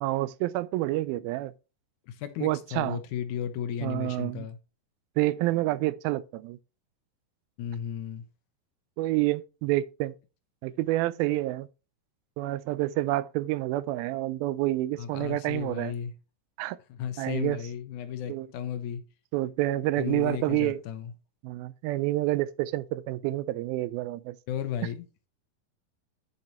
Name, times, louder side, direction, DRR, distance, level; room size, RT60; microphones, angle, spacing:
voice 1, 0.0-1.5 2.4-3.0 3.8-4.5 5.2-6.6 9.0-10.1 10.6-11.7 12.4-15.9 16.6-16.8 17.2-17.6 18.3-18.5 19.3-20.8 21.4-24.4, right 17 dB, 85° right, 2.4 m, -28 dB
voice 2, 2.1-4.6 7.6-8.2 15.0-16.1 17.0-19.0 20.0-21.1 24.5-25.1, left 9 dB, 75° left, 1.9 m, -34 dB
8.4 x 6.8 x 3.0 m
omnidirectional pair, 4.2 m